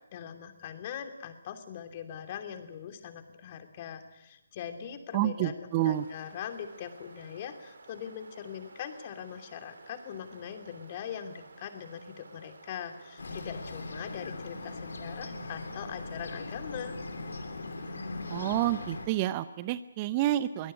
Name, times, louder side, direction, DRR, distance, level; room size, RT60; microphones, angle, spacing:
voice 1, 0.1-17.0, left 8 dB, 35° left, 7 dB, 2.9 m, -41 dB
voice 2, 5.1-6.1 18.3-20.7, right 14 dB, 25° right, 14 dB, 0.8 m, -29 dB
sound 1, 5.7-19.2, right 3 dB, 65° right, 4.5 m, -53 dB
Bird, 13.2-19.1, left 3 dB, 65° left, 3.3 m, -40 dB
22.5 x 19.0 x 9.8 m, 0.95 s
figure-of-eight pair, 145°, 0 cm